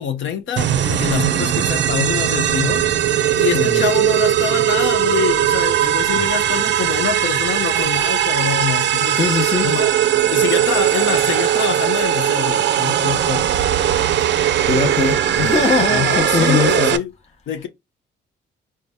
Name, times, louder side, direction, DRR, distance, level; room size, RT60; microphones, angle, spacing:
voice 1, 0.0-2.9 3.3-9.3 9.6-10.0 10.3-13.5 15.9-17.1 17.5-17.7, left 8 dB, 70° left, 0.7 m, -25 dB
sound 1, 0.6-17.0, right 11 dB, 65° right, 0.4 m, -18 dB
voice 2, 3.5-3.9 9.2-9.8 14.2-14.3 14.7-16.9, left 5 dB, 35° left, 0.8 m, -21 dB
3.8 x 2.2 x 3.4 m
cardioid pair, 90°, 20 cm